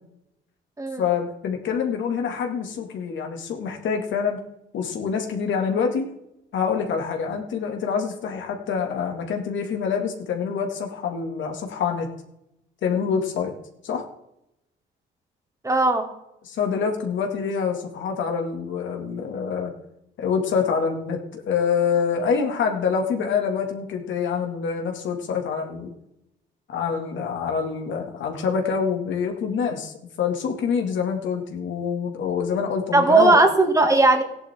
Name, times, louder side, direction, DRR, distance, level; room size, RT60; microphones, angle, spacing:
voice 1, 1.0-4.4 4.7-6.1 6.5-12.1 12.8-13.5 13.8-14.0 16.4-19.7 20.2-25.9 26.7-33.4, left 6 dB, 70° left, 3 dB, 2.2 m, -26 dB
voice 2, 15.6-16.1 32.9-34.2, right 2 dB, 15° right, 4 dB, 2.3 m, -17 dB
15.0 x 10.5 x 3.7 m, 0.82 s
cardioid pair, 90°, 20 cm